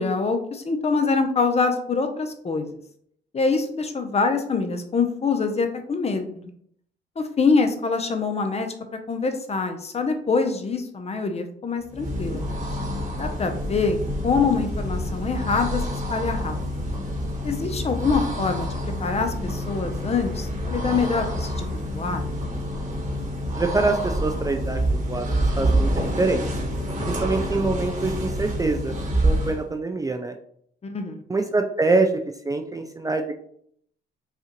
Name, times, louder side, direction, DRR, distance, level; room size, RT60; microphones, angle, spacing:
voice 1, 0.0-2.7 3.3-6.3 7.2-8.7 9.1-12.4 13.2-14.0 14.2-15.8 16.1-16.6 17.4-21.7 21.9-22.2 30.8-31.2, left 4 dB, 30° left, 6 dB, 0.7 m, -24 dB
sound 1, 11.9-29.7, equal, 40° right, 1.4 m, -27 dB
voice 2, 23.6-25.3 25.6-26.4 27.1-28.9 29.2-30.3 31.3-32.1 32.4-33.3, right 3 dB, 15° right, 4 dB, 0.4 m, -24 dB
5.6 x 2.4 x 3.0 m, 0.66 s
cardioid pair, 90°, 20 cm